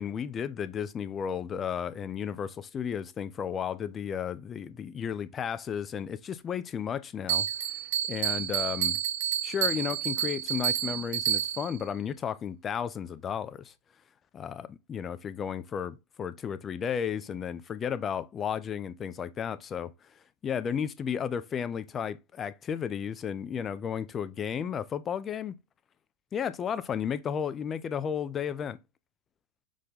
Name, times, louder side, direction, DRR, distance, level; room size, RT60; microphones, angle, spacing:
voice 1, 0.0-7.5 8.1-9.0 9.4-13.7 14.3-19.9 20.4-25.6 26.3-28.8, left 8 dB, 25° left, 0.4 m, -33 dB
Bell, 7.3-11.8, right 11 dB, 55° right, 0.8 m, -30 dB
6.0 x 2.2 x 3.8 m
figure-of-eight pair, 90°, 0 cm